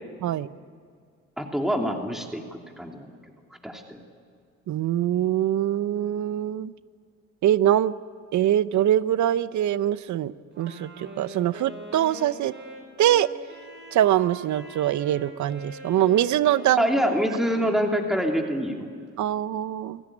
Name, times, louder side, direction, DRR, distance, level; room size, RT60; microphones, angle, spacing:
voice 1, 1.4-3.1 3.6-4.0 16.8-18.9, equal, ahead, 2 dB, 2.9 m, -26 dB
voice 2, 4.7-6.7 7.4-7.9 8.3-12.5 13.0-13.3 13.9-16.9 19.2-20.0, right 12 dB, 70° right, 16 dB, 0.8 m, -23 dB
Wind instrument woodwind instrument, 10.5-18.8, right 3 dB, 35° right, 6.4 m, -42 dB
29.0 x 17.0 x 9.9 m, 2.1 s
cardioid pair, 90°, 30 cm